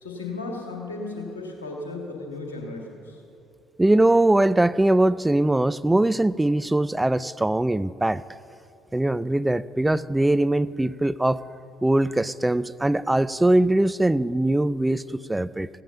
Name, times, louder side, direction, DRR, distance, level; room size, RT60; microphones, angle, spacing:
voice 1, 0.0-3.2, left 3 dB, 80° left, 0 dB, 1.8 m, -35 dB
voice 2, 3.8-8.2 8.9-11.4 11.8-15.7, right 1 dB, 10° right, 16 dB, 0.3 m, -21 dB
15.5 x 9.9 x 5.6 m, 2.6 s
figure-of-eight pair, 50°, 0 cm